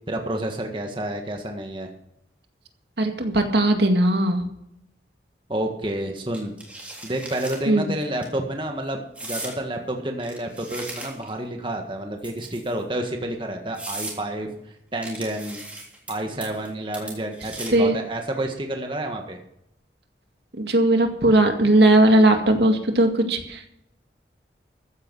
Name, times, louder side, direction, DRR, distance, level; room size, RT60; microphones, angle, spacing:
voice 1, 0.1-1.9 5.5-6.5 7.0-15.6 16.1-19.4, right 1 dB, 30° right, 3 dB, 1.7 m, -29 dB
voice 2, 3.0-4.5 7.7-7.9 17.7-18.0 20.5-23.7, right 1 dB, 70° right, 5 dB, 2.1 m, -18 dB
sound 1, 6.3-7.6 8.0-8.3 9.2-9.6 10.2-11.4 12.2-12.8 13.3-13.4 13.8-14.2 15.0-16.1 16.4-16.7 16.9-17.9, right 2 dB, 10° right, 3.4 m, -37 dB
14.5 x 9.7 x 5.6 m, 0.77 s
head